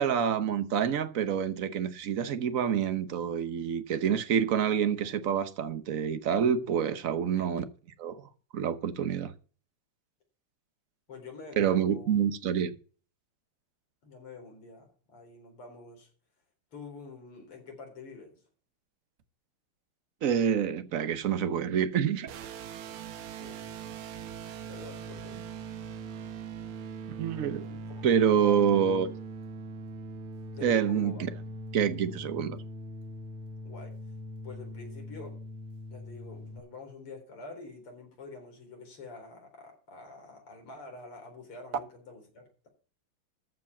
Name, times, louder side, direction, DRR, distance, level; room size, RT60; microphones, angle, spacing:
voice 1, 0.0-7.6 8.0-8.2 8.5-9.3 11.6-12.7 20.2-22.3 27.2-27.7 28.0-29.1 30.6-31.3 31.7-32.6, right 8 dB, 55° right, 1.0 m, -27 dB
voice 2, 11.1-12.2 14.0-16.1 16.7-18.3 23.4-23.6 24.7-25.3 27.7-28.6 30.5-31.2 33.6-33.9 34.4-35.4 35.9-42.7, left 3 dB, 75° left, 4.9 m, -47 dB
sound 1, 22.3-36.6, right 2 dB, 75° right, 1.8 m, -41 dB
14.0 x 5.2 x 7.1 m
omnidirectional pair, 2.4 m